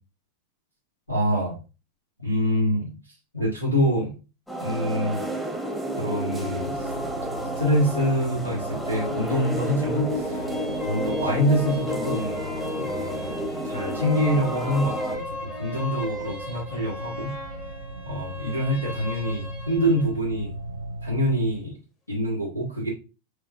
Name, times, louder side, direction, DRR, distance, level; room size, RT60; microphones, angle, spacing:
voice 1, 1.1-1.6 2.2-2.9 3.3-4.1 4.6-5.2 6.0-6.9 7.5-10.4 10.8-12.5 12.8-17.3 18.0-20.5 21.0-21.8 22.1-22.9, equal, 85° left, -5 dB, 1.4 m, -25 dB
sound 1, 4.5-15.2, equal, ahead, 0.7 m, -30 dB
sound 2, 6.3-21.6, right 2 dB, 75° right, 0.4 m, -39 dB
sound 3, 10.2-20.1, left 2 dB, 30° left, 1.1 m, -37 dB
6.8 x 2.3 x 2.6 m, 0.31 s
figure-of-eight pair, 90°, 0 cm